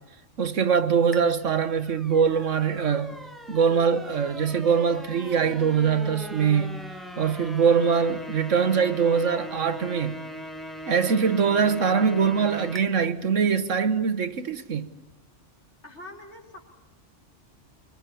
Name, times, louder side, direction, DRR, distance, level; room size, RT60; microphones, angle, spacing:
voice 1, 0.4-3.2 3.5-6.9 7.2-10.3 10.9-14.9, right 6 dB, 80° right, 1.6 m, -23 dB
sound 1, 1.1-12.8, equal, ahead, 1.7 m, -40 dB
voice 2, 15.8-16.6, left 2 dB, 60° left, 5.2 m, -43 dB
26.0 x 23.5 x 8.5 m
omnidirectional pair, 1.3 m